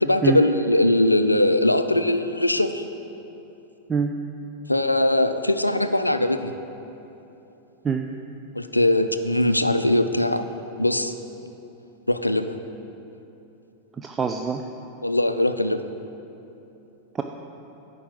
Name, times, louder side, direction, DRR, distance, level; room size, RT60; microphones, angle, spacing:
voice 1, 0.0-2.8 4.7-6.5 8.6-10.4 10.8-11.1 12.1-12.6 15.0-15.8, left 1 dB, 85° left, 10 dB, 0.4 m, -21 dB
voice 2, 14.0-14.6 17.1-17.2, right 6 dB, 20° right, 4 dB, 0.4 m, -24 dB
10.0 x 4.8 x 7.7 m, 2.9 s
figure-of-eight pair, 90°, 0 cm